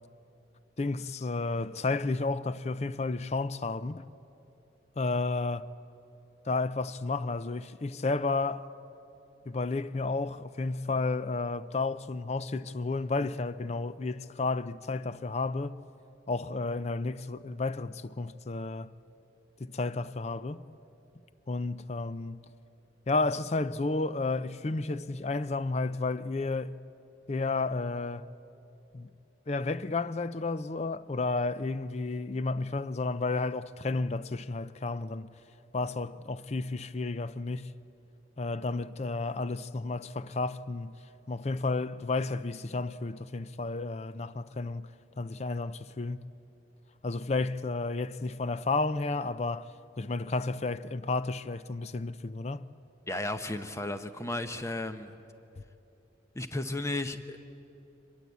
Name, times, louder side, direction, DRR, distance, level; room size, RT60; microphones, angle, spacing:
voice 1, 0.8-4.0 5.0-5.7 6.5-8.7 9.5-15.8 16.3-18.9 19.6-20.6 21.5-22.4 23.1-26.8 27.3-28.3 28.9-29.1 29.5-35.3 35.7-37.7 38.4-40.9 41.3-44.9 45.2-46.3 47.0-52.7, left 3 dB, 35° left, 0.5 m, -32 dB
voice 2, 53.1-55.1 56.3-57.4, left 2 dB, 15° left, 0.8 m, -34 dB
23.5 x 21.5 x 8.3 m
head